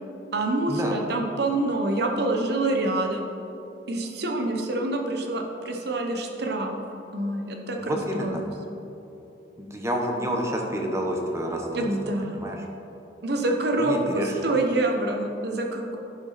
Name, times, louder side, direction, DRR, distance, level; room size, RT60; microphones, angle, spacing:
voice 1, 0.3-3.3 3.9-6.8 7.1-8.5 11.7-12.5 13.2-16.0, right 2 dB, 65° right, 3 dB, 1.0 m, -26 dB
voice 2, 7.8-8.4 9.6-11.9 12.2-12.6 13.8-14.5, equal, 15° right, 1 dB, 0.9 m, -29 dB
11.0 x 6.1 x 4.1 m, 3.0 s
head